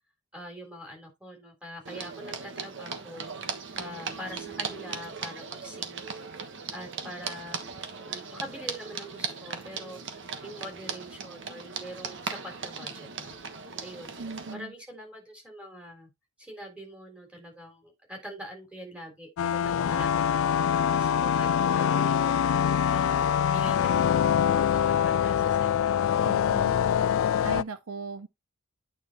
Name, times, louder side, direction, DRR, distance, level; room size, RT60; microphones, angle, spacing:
voice 1, 0.3-6.1 6.7-7.6 8.0-13.3 13.8-14.1 14.5-16.1 16.4-22.4 22.9-26.1, equal, 5° right, 3.8 m, -44 dB
sound 1, 1.9-14.5, right 5 dB, 60° right, 1.3 m, -38 dB
voice 2, 14.2-14.7 26.2-26.8 27.4-28.3, right 4 dB, 75° right, 0.6 m, -38 dB
sound 2, 19.4-27.6, left 8 dB, 65° left, 0.3 m, -24 dB
9.1 x 5.5 x 3.0 m
head